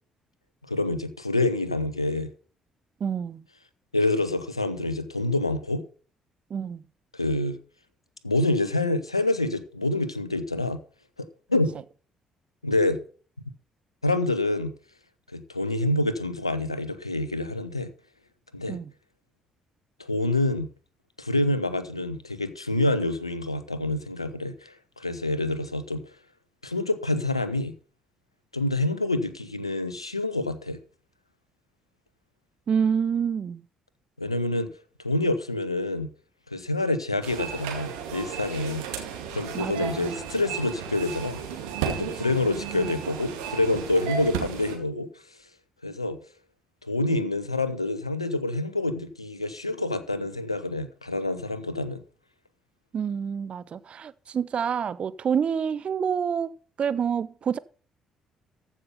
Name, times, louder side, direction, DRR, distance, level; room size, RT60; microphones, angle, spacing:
voice 1, 0.7-2.3 3.9-5.8 7.1-7.6 8.2-10.8 11.2-11.8 12.6-13.0 14.0-14.7 15.3-17.9 18.5-18.8 20.0-20.7 21.2-26.0 26.6-27.7 28.5-30.8 34.2-34.7 35.0-36.1 36.5-38.9 39.3-41.4 41.9-45.1 45.8-46.2 46.8-52.0, left 2 dB, 90° left, 0.6 m, -27 dB
voice 2, 3.0-3.4 6.5-6.8 18.7-18.9 32.7-33.6 39.5-40.2 52.9-57.6, right 7 dB, 40° right, 0.5 m, -28 dB
sound 1, 37.2-44.8, right 8 dB, 70° right, 2.1 m, -34 dB
14.5 x 5.7 x 5.5 m
figure-of-eight pair, 45°, 3 cm